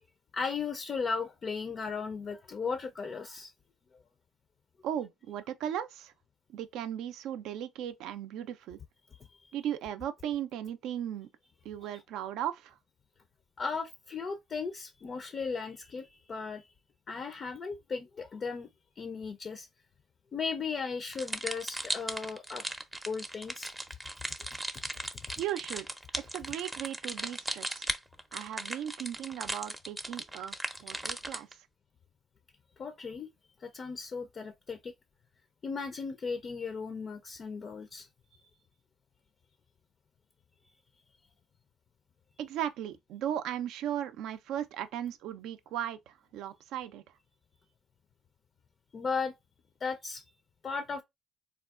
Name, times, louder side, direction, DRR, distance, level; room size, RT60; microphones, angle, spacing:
voice 1, 0.3-3.5 9.3-9.5 13.6-16.7 17.1-18.7 19.0-19.7 20.3-22.6 23.1-23.7 24.7-24.8 32.8-33.3 33.6-34.9 35.6-38.1 38.4-38.5 48.9-49.3 49.8-50.2 50.6-51.0, left 5 dB, 45° left, 0.4 m, -36 dB
voice 2, 4.8-6.1 6.5-8.8 9.5-11.3 11.6-12.8 25.4-25.9 26.3-27.9 28.3-31.5 42.4-47.0, right 10 dB, 70° right, 0.4 m, -37 dB
sound 1, 21.1-31.5, right 1 dB, 10° right, 0.5 m, -37 dB
3.4 x 2.2 x 2.3 m
supercardioid pair, 65°, 0 cm